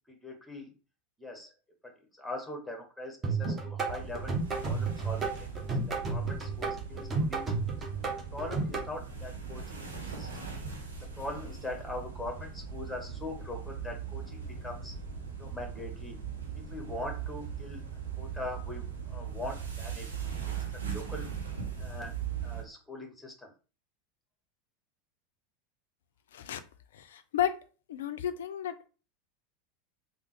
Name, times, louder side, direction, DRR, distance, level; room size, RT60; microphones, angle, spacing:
voice 1, 0.2-0.7 1.2-1.5 2.2-4.4 4.6-7.5 8.3-9.9 10.1-10.3 11.2-14.9 15.4-16.2 16.7-17.8 18.2-20.3 20.8-21.3 21.8-22.2 22.4-23.5, left 2 dB, 5° left, 2 dB, 1.0 m, -41 dB
sound 1, 3.2-8.9, right 4 dB, 20° right, 0.8 m, -32 dB
sound 2, 3.8-22.6, right 6 dB, 75° right, 0.6 m, -39 dB
voice 2, 26.9-27.6 27.9-28.8, left 10 dB, 65° left, 10 dB, 0.3 m, -32 dB
3.5 x 2.0 x 3.0 m, 0.35 s
figure-of-eight pair, 80°, 0 cm